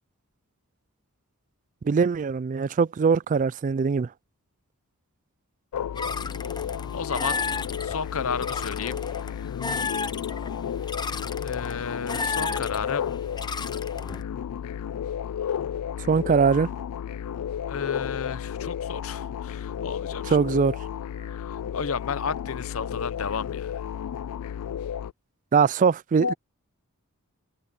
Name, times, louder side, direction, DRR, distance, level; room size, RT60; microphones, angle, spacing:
voice 1, 1.8-4.1 16.1-16.7 20.3-20.7 25.5-26.3, right 5 dB, 35° right, 0.3 m, -21 dB
sound 1, 5.7-25.1, left 9 dB, 90° left, 0.3 m, -33 dB
sound 2, 6.0-14.2, left 4 dB, 20° left, 0.7 m, -33 dB
voice 2, 6.9-7.4 7.8-9.0 11.4-13.1 17.7-20.4 21.5-23.9 26.2-26.3, left 5 dB, 65° left, 0.7 m, -32 dB
head